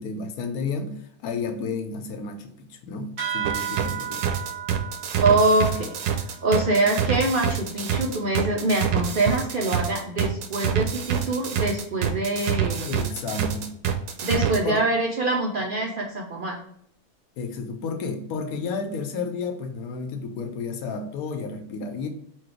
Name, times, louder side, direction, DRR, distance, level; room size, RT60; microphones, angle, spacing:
voice 1, 0.0-4.3 12.9-13.8 14.6-14.8 17.4-22.1, left 4 dB, 70° left, 6 dB, 1.0 m, -32 dB
sound 1, 3.2-8.1, right 8 dB, 40° right, 1.1 m, -35 dB
sound 2, 3.4-14.6, right 8 dB, 85° right, 1.2 m, -26 dB
voice 2, 5.2-12.9 14.2-16.6, right 2 dB, 70° right, 0 dB, 0.5 m, -24 dB
4.5 x 2.3 x 4.3 m, 0.68 s
omnidirectional pair, 1.6 m